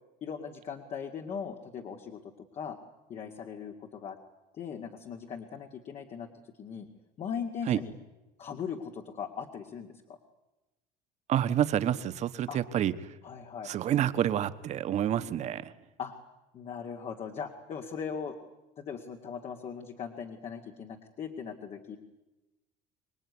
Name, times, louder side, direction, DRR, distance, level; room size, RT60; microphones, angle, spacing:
voice 1, 0.2-2.8 3.1-4.2 4.5-6.3 6.6-6.9 7.2-7.9 8.4-10.2 12.5-12.6 13.2-13.7 16.0-16.1 16.5-18.4 18.8-22.0, left 7 dB, 45° left, 3 dB, 2.2 m, -39 dB
voice 2, 11.3-12.9 13.6-15.7, right 10 dB, 45° right, 12 dB, 1.3 m, -28 dB
25.5 x 19.0 x 9.7 m, 1.0 s
cardioid pair, 120°, 16 cm